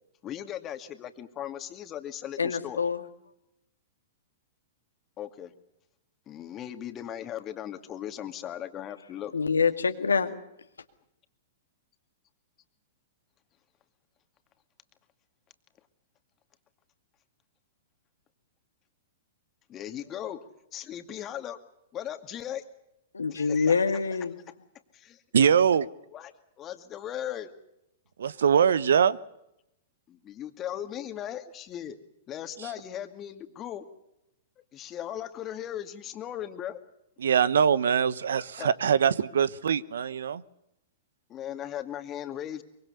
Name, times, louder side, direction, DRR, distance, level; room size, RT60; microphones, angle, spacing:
voice 1, 0.2-2.8 5.2-5.5 6.3-9.3 19.7-20.4 20.7-21.6 21.9-22.6 23.3-23.8 24.9-25.2 26.1-26.3 26.6-27.5 30.1-32.0 32.3-33.8 34.7-36.8 38.1-38.2 38.6-38.7 41.3-42.6, left 11 dB, 30° left, 8 dB, 2.4 m, -38 dB
voice 2, 2.4-3.0 9.3-10.4 23.1-24.3, left 5 dB, 90° left, 7 dB, 2.1 m, -25 dB
voice 3, 25.3-25.9 28.2-29.2 37.2-40.4, right 7 dB, 75° right, 18 dB, 1.0 m, -23 dB
24.0 x 23.5 x 7.0 m, 0.84 s
hypercardioid pair, 115°, 0 cm